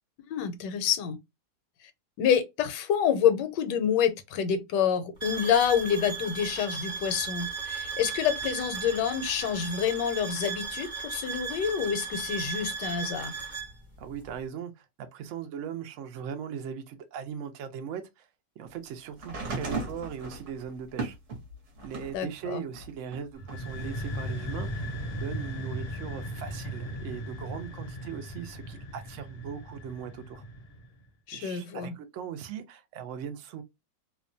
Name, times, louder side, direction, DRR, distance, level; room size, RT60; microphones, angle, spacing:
voice 1, 0.3-1.2 2.2-13.3 22.1-22.6 31.3-31.9, left 8 dB, 80° left, 1.2 m, -27 dB
sound 1, 5.2-13.7, right 5 dB, 25° right, 0.8 m, -36 dB
voice 2, 14.0-18.3 18.6-21.2 21.8-30.4 31.3-33.6, right 8 dB, 80° right, 0.6 m, -39 dB
sound 2, 19.2-22.2 22.7-23.9 24.9-25.0, right 3 dB, 50° right, 1.0 m, -37 dB
sound 3, 23.3-31.0, equal, 55° left, 0.7 m, -37 dB
2.8 x 2.1 x 2.5 m
omnidirectional pair, 1.9 m